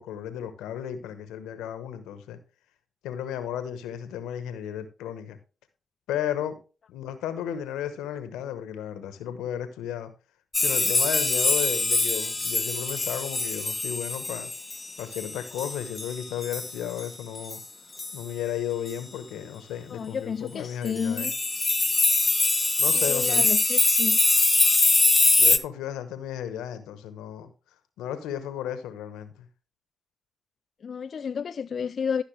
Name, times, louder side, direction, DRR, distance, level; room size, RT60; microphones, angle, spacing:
voice 1, 0.0-2.4 3.0-5.4 6.1-6.6 6.9-10.1 10.6-14.5 15.0-17.6 18.1-21.3 22.8-23.5 25.4-27.5 28.0-29.3, left 10 dB, 85° left, 1.0 m, -34 dB
sound 1, 10.5-16.7 17.0-17.1 17.4-17.6 18.0-18.2 18.9-19.0 20.9-25.6, left 3 dB, 25° left, 0.7 m, -23 dB
voice 2, 19.9-21.3 23.0-24.2 30.8-32.2, left 6 dB, 60° left, 0.4 m, -31 dB
13.5 x 5.6 x 3.2 m
supercardioid pair, 45°, 0 cm